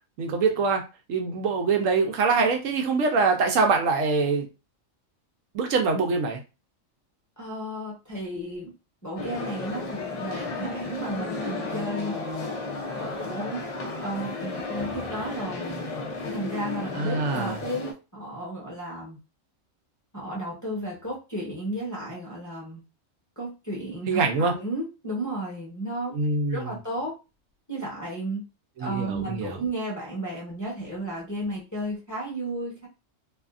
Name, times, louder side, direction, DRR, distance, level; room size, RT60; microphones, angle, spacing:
voice 1, 0.2-0.8 1.1-4.5 5.5-6.4 16.9-17.6 24.1-24.5 26.1-26.7 28.8-29.6, right 4 dB, 80° right, 3 dB, 1.0 m, -24 dB
voice 2, 7.4-8.7 9.0-12.1 13.0-13.6 14.0-15.8 16.2-19.2 20.1-22.8 23.4-26.1 26.5-27.1 27.7-28.4 28.8-32.9, right 1 dB, 15° left, -5 dB, 0.8 m, -33 dB
sound 1, 9.2-17.9, left 3 dB, 70° left, 0.3 m, -33 dB
2.7 x 2.3 x 2.4 m, 0.29 s
omnidirectional pair, 1.4 m